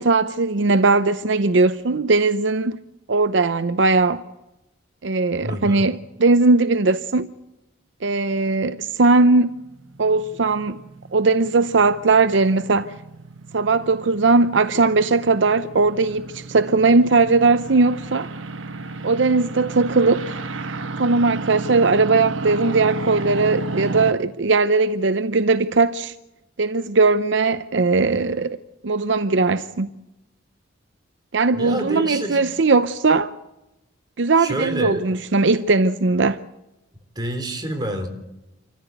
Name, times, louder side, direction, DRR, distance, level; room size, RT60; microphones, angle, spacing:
voice 1, 0.0-2.8 3.1-4.2 5.0-7.3 8.0-9.6 10.0-10.8 11.1-12.9 13.5-18.3 19.0-20.4 21.0-26.1 26.6-28.6 28.8-29.9 31.3-33.3 34.2-36.4, right 3 dB, 70° right, 0.7 m, -19 dB
voice 2, 5.4-5.9 31.5-32.5 34.4-35.0 37.2-38.1, right 1 dB, 20° right, 3.9 m, -28 dB
sound 1, 9.5-24.1, right 3 dB, 85° right, 1.2 m, -33 dB
27.5 x 14.5 x 8.0 m
head